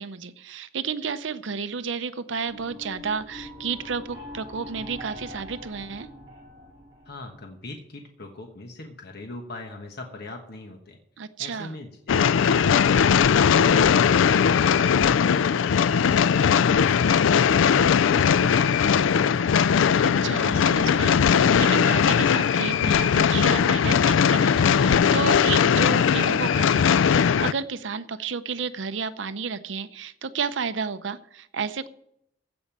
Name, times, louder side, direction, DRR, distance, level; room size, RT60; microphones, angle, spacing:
voice 1, 0.0-6.1 11.2-11.8 20.0-31.9, right 5 dB, 70° right, 12 dB, 0.7 m, -32 dB
sound 1, 2.4-7.5, left 1 dB, 30° right, 5.1 m, -43 dB
voice 2, 7.0-11.0 11.4-13.0 13.5-14.1 14.7-19.5, left 2 dB, 55° left, 3 dB, 1.3 m, -40 dB
sound 2, 12.1-27.5, left 7 dB, 85° left, 0.4 m, -19 dB
15.5 x 5.3 x 7.3 m, 0.73 s
head